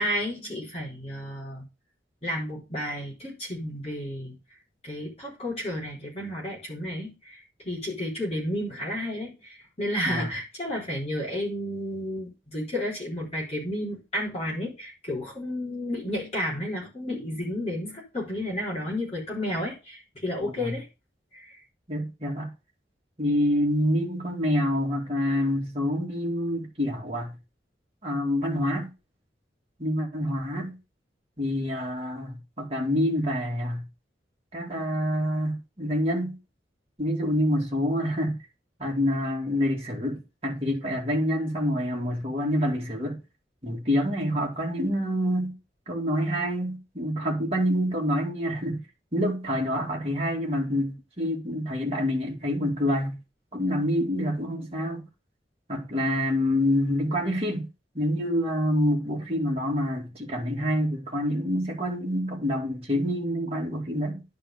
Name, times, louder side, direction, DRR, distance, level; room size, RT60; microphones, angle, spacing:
voice 1, 0.0-1.7 2.2-4.3 4.8-20.9 21.3-21.6, left 1 dB, 35° left, 3.8 m, -32 dB
voice 2, 20.4-20.8 21.9-22.5 23.2-27.4 28.0-28.9 29.8-30.8 31.4-33.8 34.5-36.4 37.0-38.4 38.8-43.2 43.6-45.5 45.9-48.8 49.1-53.2 53.5-55.1 55.7-57.7 57.9-64.2, equal, 35° right, 2.4 m, -27 dB
11.0 x 4.5 x 5.2 m
head